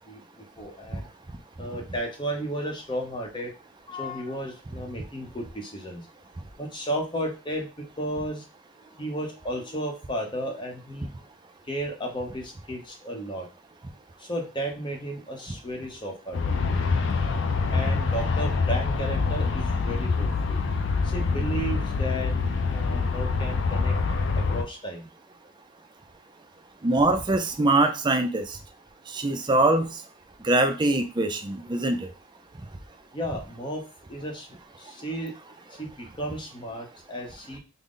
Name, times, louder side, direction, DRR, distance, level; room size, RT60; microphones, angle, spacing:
voice 1, 0.6-1.1 1.6-3.5 3.9-6.0 6.6-8.4 9.0-11.1 11.7-13.5 14.2-16.5 17.7-20.6 21.1-22.3 22.6-23.9 24.5-25.1 33.1-33.8 34.1-34.5 34.8-35.3 35.8-37.6, equal, 25° left, 1 dB, 0.8 m, -33 dB
Aircraft, 16.3-24.6, left 4 dB, 60° left, 0.4 m, -25 dB
voice 2, 26.8-28.4 29.1-29.9 30.4-32.0, right 2 dB, 20° right, 6 dB, 0.4 m, -23 dB
3.7 x 2.1 x 3.6 m, 0.31 s
head